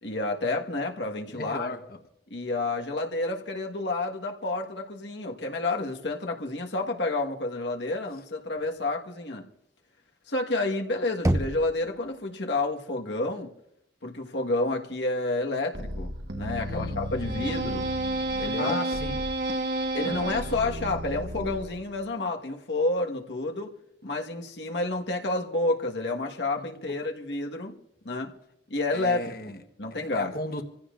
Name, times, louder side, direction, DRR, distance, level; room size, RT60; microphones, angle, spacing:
voice 1, 0.0-1.7 2.3-9.5 10.3-13.5 14.0-17.9 18.4-18.8 19.9-23.7 24.0-27.8 28.0-28.3 28.7-29.3 29.8-30.4, left 2 dB, 85° left, 2 dB, 1.5 m, -30 dB
voice 2, 1.3-2.0 16.6-17.0 18.4-19.2 26.6-26.7 28.9-29.6 29.9-30.6, left 2 dB, 55° left, 6 dB, 1.2 m, -36 dB
Knock, 11.2-12.2, right 1 dB, 15° right, 0.6 m, -27 dB
sound 1, 15.7-22.0, right 1 dB, 85° right, 1.4 m, -31 dB
27.5 x 15.5 x 2.5 m, 0.74 s
head